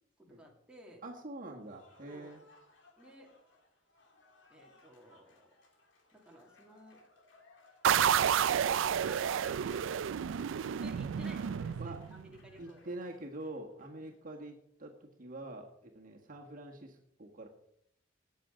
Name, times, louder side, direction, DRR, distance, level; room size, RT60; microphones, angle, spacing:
voice 1, 0.3-1.0 2.0-2.4 3.0-3.3 4.5-5.5 6.1-7.0 8.1-10.2 10.6-12.9, equal, 5° right, -1 dB, 2.4 m, -53 dB
voice 2, 1.0-2.4 11.8-12.0 12.6-17.5, right 2 dB, 45° right, 1 dB, 1.7 m, -45 dB
Cheering / Applause, 1.6-14.2, left 2 dB, 70° left, 2.7 m, -64 dB
sound 1, 7.8-12.4, right 8 dB, 85° right, 0.4 m, -30 dB
18.5 x 7.1 x 5.1 m, 0.72 s
head